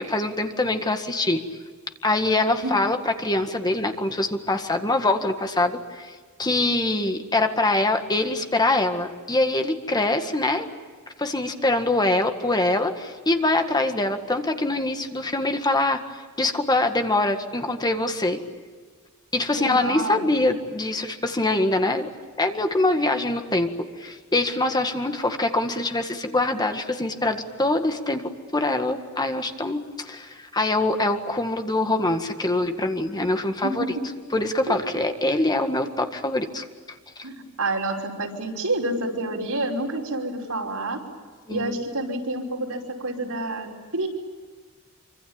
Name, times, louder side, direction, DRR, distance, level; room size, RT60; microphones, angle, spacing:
voice 1, 0.0-1.4 2.0-10.7 11.2-16.0 16.4-18.4 19.3-22.1 22.4-34.0 34.3-36.6 41.5-41.8, left 2 dB, 20° left, 6 dB, 1.8 m, -24 dB
voice 2, 19.5-20.2 33.6-33.9 34.7-34.8 37.2-41.0 41.5-44.1, right 2 dB, 90° right, 0 dB, 5.4 m, -28 dB
26.5 x 25.5 x 8.9 m, 1.5 s
head